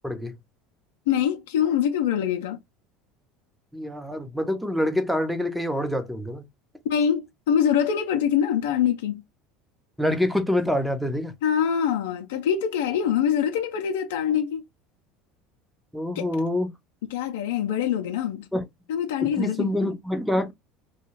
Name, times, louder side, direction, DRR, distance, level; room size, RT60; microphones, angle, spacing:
voice 1, 0.0-0.4 3.7-6.4 10.0-11.3 15.9-16.7 18.5-18.6 19.2-20.5, left 1 dB, ahead, 0.7 m, -26 dB
voice 2, 1.1-2.6 6.9-9.2 11.4-14.6 16.1-16.3 17.1-18.5 18.9-19.9, left 9 dB, 80° left, 0.5 m, -24 dB
2.4 x 2.2 x 3.1 m
hypercardioid pair, 80°, 0 cm